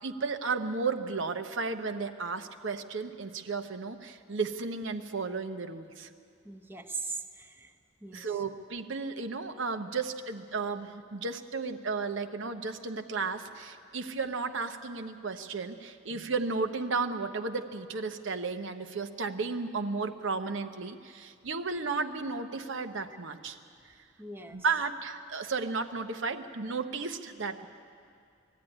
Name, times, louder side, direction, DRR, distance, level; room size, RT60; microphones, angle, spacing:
voice 1, 0.0-6.1 8.1-23.6 24.5-27.7, right 4 dB, 70° right, 7 dB, 0.9 m, -34 dB
voice 2, 6.4-8.4 24.2-24.6, right 4 dB, 10° right, 4 dB, 0.8 m, -41 dB
20.0 x 14.0 x 9.9 m, 2.4 s
head